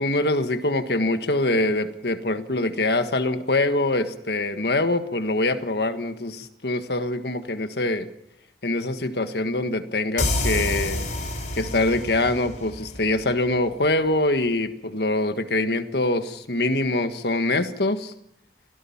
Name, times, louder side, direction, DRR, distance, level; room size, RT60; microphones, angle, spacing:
voice 1, 0.0-8.1 8.6-11.0 11.6-18.1, left 2 dB, 65° left, 9 dB, 1.6 m, -24 dB
sound 1, 10.2-13.7, left 1 dB, 45° left, 5.9 m, -29 dB
25.5 x 17.0 x 7.2 m, 0.79 s
head